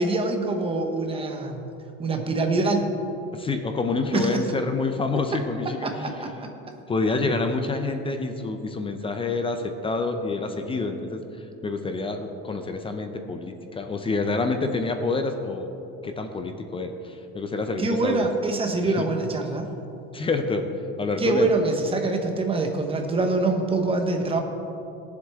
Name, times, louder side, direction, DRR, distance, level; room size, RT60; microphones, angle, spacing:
voice 1, 0.0-1.6 2.0-2.9 4.1-4.5 5.8-6.3 17.8-19.7 21.2-24.4, right 3 dB, 20° right, 4 dB, 1.0 m, -24 dB
voice 2, 3.3-6.1 6.9-11.2 11.6-15.7 16.0-16.9 17.3-18.3 18.8-18.9 20.1-20.7 21.0-21.5, left 3 dB, 20° left, 6 dB, 0.5 m, -27 dB
18.0 x 7.5 x 3.5 m, 2.9 s
cardioid pair, 150°, 31 cm